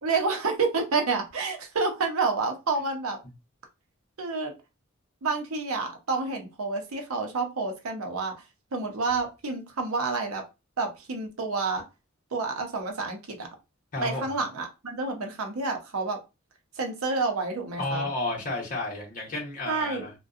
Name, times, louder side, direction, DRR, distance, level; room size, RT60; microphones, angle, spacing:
voice 1, 0.0-3.2 4.2-4.5 5.2-8.3 8.7-10.4 10.8-11.8 12.3-13.5 14.0-16.2 16.8-18.1 19.7-20.1, right 4 dB, 85° right, 0.7 m, -29 dB
voice 2, 13.9-14.2 17.8-20.1, left 2 dB, 40° left, 0.9 m, -31 dB
2.6 x 2.2 x 2.3 m
head